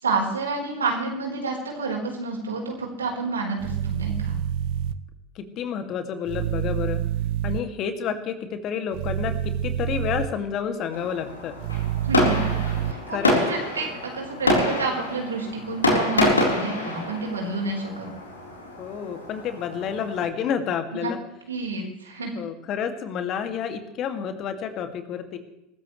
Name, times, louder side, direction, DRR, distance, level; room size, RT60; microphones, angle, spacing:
voice 1, 0.0-4.3 12.0-12.5 12.8-13.9 14.1-18.1 20.9-21.1 21.5-22.3, right 3 dB, 85° right, 0 dB, 4.2 m, -29 dB
sound 1, 3.6-4.9 6.3-7.6 8.9-10.3 11.6-12.9, right 11 dB, 60° right, 0.8 m, -27 dB
voice 2, 5.4-7.0 7.4-11.6 13.1-13.4 18.8-21.2 22.4-25.4, left 7 dB, 45° left, 7 dB, 2.3 m, -29 dB
Fireworks, 10.9-20.3, left 1 dB, 90° left, 4.0 m, -26 dB
23.5 x 14.0 x 3.2 m, 0.87 s
figure-of-eight pair, 75°, 0 cm